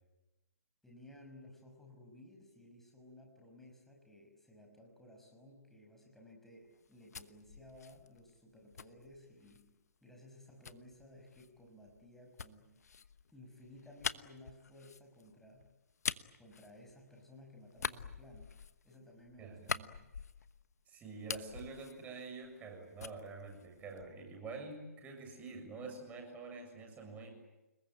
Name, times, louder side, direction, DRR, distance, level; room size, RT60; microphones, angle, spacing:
voice 1, 0.8-9.7 10.0-12.8 13.3-15.7 16.4-20.1, left 1 dB, 5° left, 1 dB, 5.8 m, -57 dB
sound 1, 6.7-9.7 10.6-17.3 17.7-20.7 21.0-22.7 23.0-24.3, left 6 dB, 70° left, 1.1 m, -45 dB
voice 2, 19.4-19.8 20.9-27.3, right 4 dB, 15° right, 3 dB, 7.0 m, -47 dB
30.0 x 21.0 x 9.0 m, 1.0 s
figure-of-eight pair, 135°, 9 cm